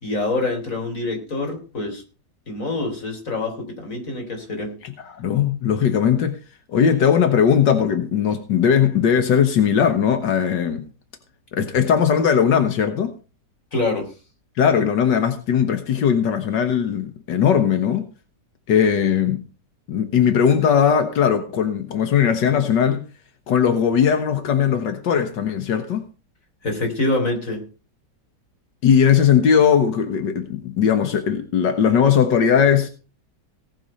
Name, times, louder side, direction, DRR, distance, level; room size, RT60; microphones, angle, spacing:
voice 1, 0.0-2.0 2.5-4.8 13.7-14.1 26.6-27.6, left 2 dB, 50° left, 4.0 m, -25 dB
voice 2, 4.8-6.4 6.7-10.8 11.5-13.1 14.6-18.1 18.7-19.4 19.9-23.0 23.5-26.0 28.8-32.9, left 8 dB, 90° left, 1.9 m, -19 dB
18.0 x 7.0 x 5.5 m
omnidirectional pair, 1.9 m